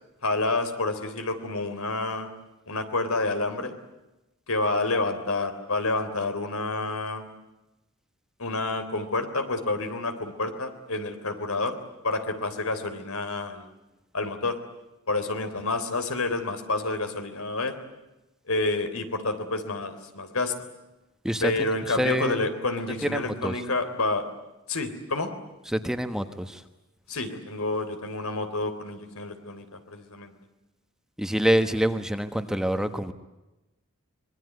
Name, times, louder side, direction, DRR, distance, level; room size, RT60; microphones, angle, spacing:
voice 1, 0.2-2.3 2.7-3.7 4.5-7.2 8.4-11.8 12.0-13.7 14.1-14.6 15.1-17.8 18.5-20.5 21.4-24.2 24.7-25.3 27.1-30.3, left 2 dB, 85° left, 8 dB, 3.5 m, -29 dB
voice 2, 21.9-22.4 23.0-23.5 25.7-26.6 31.2-33.1, equal, 5° right, 8 dB, 1.3 m, -26 dB
26.0 x 21.5 x 9.5 m, 1.0 s
head